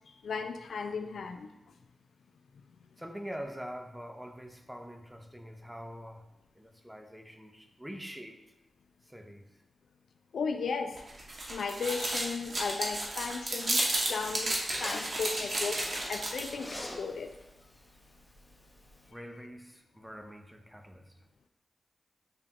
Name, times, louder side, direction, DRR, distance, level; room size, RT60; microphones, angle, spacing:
voice 1, 0.1-1.5 10.3-11.0 11.5-17.4 19.1-19.2, left 5 dB, 85° left, 6 dB, 0.3 m, -36 dB
voice 2, 3.0-6.3 6.6-8.4 9.1-9.5 19.1-21.1, equal, 5° right, 4 dB, 0.6 m, -44 dB
sound 1, 11.0-16.6, right 1 dB, 55° right, 0.9 m, -33 dB
Zipper (clothing), 12.4-19.1, left 1 dB, 25° left, 0.8 m, -47 dB
6.8 x 2.5 x 2.8 m, 0.92 s
cardioid pair, 60°, 0 cm